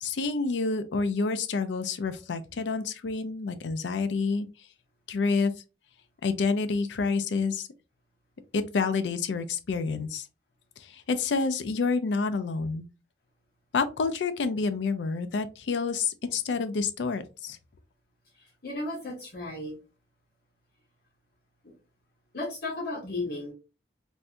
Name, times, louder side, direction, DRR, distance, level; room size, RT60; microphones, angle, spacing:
voice 1, 0.0-4.5 5.1-5.5 6.2-7.7 8.5-10.3 10.8-12.9 13.7-17.6, left 4 dB, 85° left, 0.4 m, -28 dB
voice 2, 18.6-19.8 22.3-23.5, left 2 dB, 60° left, 1.1 m, -34 dB
3.3 x 2.6 x 2.5 m
head